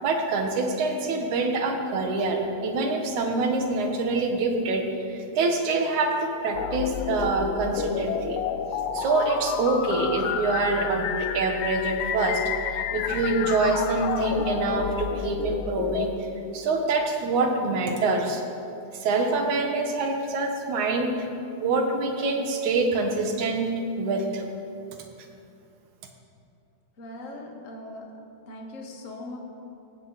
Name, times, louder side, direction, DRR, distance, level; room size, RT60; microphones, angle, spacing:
voice 1, 0.0-8.4 8.9-12.4 12.7-16.1 16.5-18.4 18.9-21.3 21.6-23.7 24.0-24.4, right 3 dB, 70° right, 3 dB, 2.9 m, -25 dB
sound 1, 6.5-16.1, left 8 dB, 80° left, 2.1 m, -30 dB
voice 2, 27.0-28.1 28.4-29.4, left 2 dB, 30° left, 0 dB, 1.7 m, -40 dB
18.0 x 16.0 x 4.2 m, 2.7 s
omnidirectional pair, 3.6 m